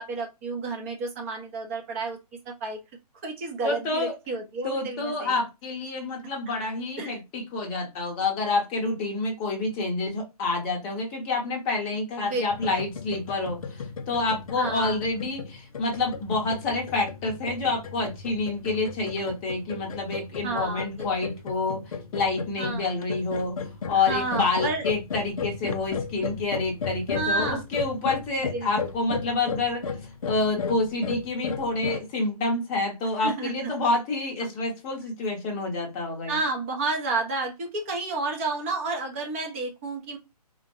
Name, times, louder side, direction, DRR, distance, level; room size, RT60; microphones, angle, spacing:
voice 1, 0.0-2.2 2.5-2.8 3.2-5.3 7.0-7.2 12.2-12.8 14.6-15.0 20.4-21.4 22.6-22.9 23.9-24.8 27.1-27.6 28.5-28.9 33.2-33.7 34.4-34.5 36.3-40.2, right 3 dB, 20° right, 1 dB, 0.5 m, -31 dB
voice 2, 3.6-4.1 4.6-29.9 30.2-36.4, left 3 dB, 15° left, 1 dB, 0.7 m, -28 dB
sound 1, 12.5-32.0, left 5 dB, 60° left, 0.5 m, -35 dB
3.7 x 2.1 x 2.9 m, 0.24 s
figure-of-eight pair, 140°, 21 cm